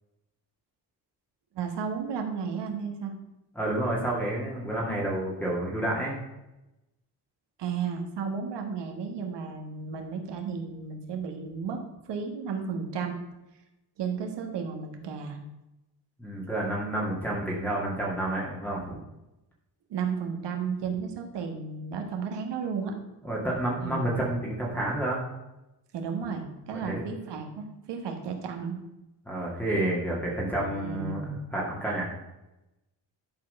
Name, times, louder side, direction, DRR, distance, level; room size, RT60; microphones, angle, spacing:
voice 1, 1.5-3.1 7.6-13.2 14.0-15.4 19.9-22.9 23.8-24.1 25.9-28.7 30.6-31.4, right 6 dB, 75° right, 4 dB, 1.7 m, -33 dB
voice 2, 3.6-6.2 16.2-19.0 23.2-25.2 26.7-27.0 29.3-31.2 31.5-32.1, right 1 dB, 5° left, -6 dB, 2.0 m, -29 dB
11.0 x 4.7 x 5.4 m, 0.96 s
cardioid pair, 135°, 42 cm